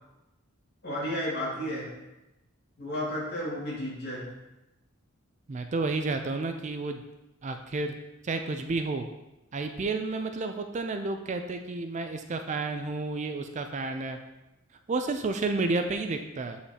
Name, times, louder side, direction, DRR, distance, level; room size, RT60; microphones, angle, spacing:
voice 1, 0.8-1.9 2.8-4.3, equal, 50° left, -6 dB, 2.2 m, -32 dB
voice 2, 5.5-7.0 7.4-7.9 8.2-9.1 9.5-14.2 14.9-16.6, right 3 dB, 35° right, 6 dB, 0.4 m, -31 dB
7.8 x 5.6 x 2.8 m, 0.97 s
head